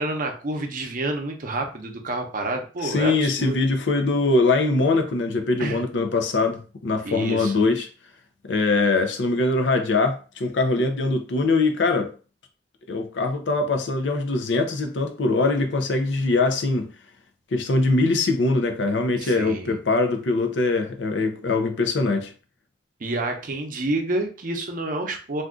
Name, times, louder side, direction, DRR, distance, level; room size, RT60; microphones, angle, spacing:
voice 1, 0.0-3.5 5.6-5.8 7.0-7.5 19.2-19.8 23.0-25.4, right 2 dB, 50° right, 0.6 m, -28 dB
voice 2, 2.8-7.9 8.5-12.1 12.9-16.9 17.5-22.3, left 3 dB, 80° left, 0.6 m, -22 dB
2.5 x 2.3 x 3.6 m
head